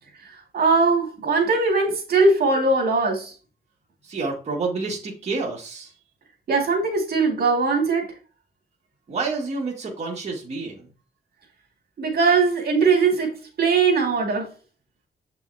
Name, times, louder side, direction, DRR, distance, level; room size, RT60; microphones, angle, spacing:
voice 1, 0.2-3.3 6.5-8.1 12.0-14.5, right 4 dB, 65° right, 2.3 m, -20 dB
voice 2, 4.0-5.9 9.1-10.8, right 3 dB, 40° right, 2.0 m, -29 dB
7.6 x 5.6 x 2.8 m
wide cardioid pair, 150°, 17 cm